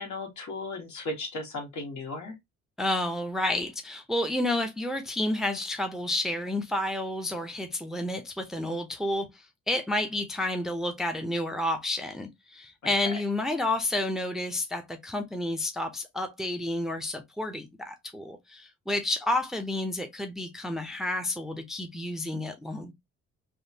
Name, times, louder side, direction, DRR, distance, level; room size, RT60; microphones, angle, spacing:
voice 1, 0.0-2.3 12.8-12.9, left 2 dB, 70° left, 1.6 m, -36 dB
voice 2, 2.8-22.9, left 1 dB, ahead, 0.5 m, -30 dB
3.5 x 2.3 x 2.7 m
cardioid pair, 90°, 30 cm